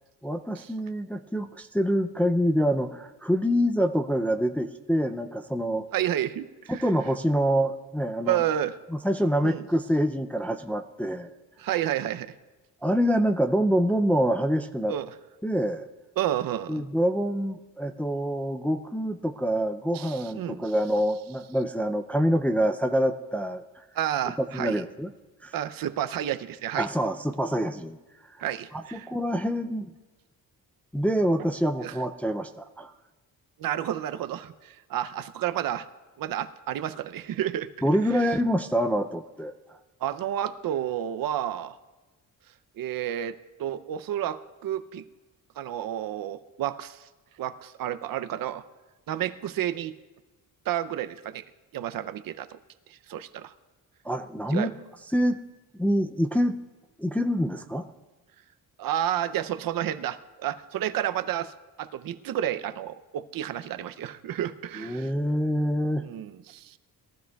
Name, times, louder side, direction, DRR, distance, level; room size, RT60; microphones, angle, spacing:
voice 1, 0.2-5.8 6.7-8.4 8.9-11.3 12.8-14.9 15.4-15.9 16.7-23.6 24.5-25.1 25.4-25.5 26.8-28.0 28.4-28.5 28.9-29.9 30.9-32.9 37.8-39.5 54.0-54.7 55.1-55.4 55.7-56.6 57.0-57.9 64.8-66.1, equal, 5° left, 6 dB, 0.3 m, -26 dB
voice 2, 5.9-6.9 8.3-8.8 9.4-9.6 11.6-12.3 14.9-15.1 16.2-16.9 19.9-20.7 24.0-24.8 25.5-26.9 28.4-29.1 31.8-32.0 33.6-35.9 36.2-37.7 38.1-38.4 40.0-41.8 42.8-43.3 43.6-45.0 45.6-47.1 47.4-48.6 49.1-49.9 50.7-51.4 51.7-52.6 52.9-53.5 54.5-54.7 58.8-61.5 61.8-65.1 66.0-66.8, right 11 dB, 65° right, 12 dB, 0.6 m, -30 dB
21.5 x 15.0 x 2.3 m, 1.2 s
cardioid pair, 150°, 36 cm